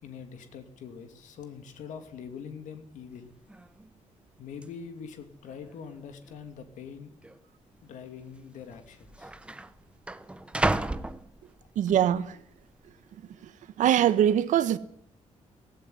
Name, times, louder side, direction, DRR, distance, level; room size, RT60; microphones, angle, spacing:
voice 1, 0.0-3.3 4.4-7.1 7.8-9.3, left 6 dB, 85° left, 2.6 m, -43 dB
sound 1, 3.2-3.3 3.5-3.9 4.6-4.7 5.5-6.0 6.2-6.4 7.2-7.4 8.4-8.5 8.7-11.9 12.4-12.8, right 2 dB, 10° right, 0.9 m, -33 dB
voice 2, 11.7-12.4 13.4-13.5 13.8-14.8, right 10 dB, 90° right, 1.4 m, -23 dB
17.0 x 16.5 x 9.6 m
cardioid pair, 160°, 12 cm